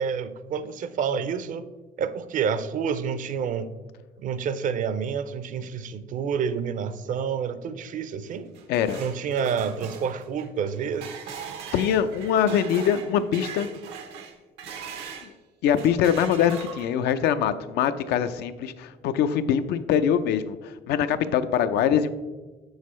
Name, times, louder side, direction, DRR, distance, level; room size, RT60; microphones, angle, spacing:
voice 1, 0.0-1.7 2.0-3.7 4.2-8.5 9.0-11.1, right 6 dB, 50° right, 13 dB, 0.5 m, -28 dB
sound 1, 8.3-15.3 15.7-17.1, right 7 dB, 90° right, 0.8 m, -40 dB
voice 2, 8.7-9.0 11.7-13.7 15.2-15.3 15.6-22.1, left 8 dB, 80° left, 11 dB, 0.5 m, -23 dB
7.3 x 6.4 x 3.1 m, 1.3 s
cardioid pair, 110°, 17 cm